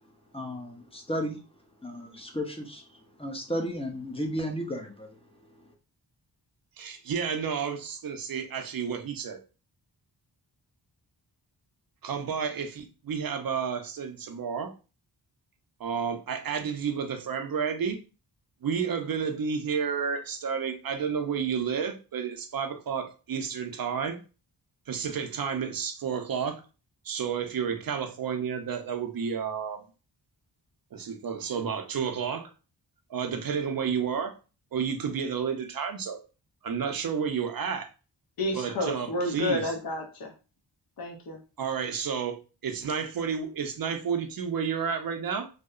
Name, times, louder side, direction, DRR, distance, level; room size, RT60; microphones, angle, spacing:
voice 1, 0.3-1.4 1.8-5.7, equal, 15° left, 3 dB, 0.5 m, -34 dB
voice 2, 6.8-9.4 12.0-14.7 15.8-18.0 18.6-24.2 24.9-26.6 27.0-29.8 30.9-32.5 33.1-34.4 34.7-36.2 36.6-37.9 38.5-39.7 41.6-45.5, right 6 dB, 55° right, 6 dB, 0.5 m, -31 dB
voice 3, 38.4-40.3 41.0-41.4, left 2 dB, 55° left, 1 dB, 0.6 m, -30 dB
2.7 x 2.0 x 2.3 m, 0.33 s
wide cardioid pair, 75°, 43 cm